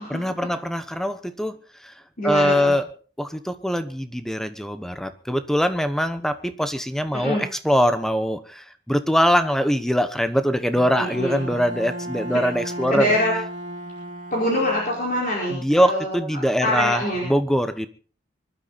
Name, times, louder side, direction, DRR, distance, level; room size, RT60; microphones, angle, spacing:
voice 1, 0.1-1.6 1.8-1.9 2.2-2.8 3.2-7.4 7.6-13.1 15.5-17.9, equal, ahead, 11 dB, 1.0 m, -22 dB
voice 2, 2.2-2.7 7.1-7.4 10.9-11.5 12.3-12.4 12.9-13.3 14.3-17.3, left 1 dB, 50° left, -3 dB, 4.9 m, -25 dB
Bowed string instrument, 10.7-15.3, right 1 dB, 50° right, 2.4 m, -35 dB
24.0 x 12.0 x 4.2 m, 0.39 s
head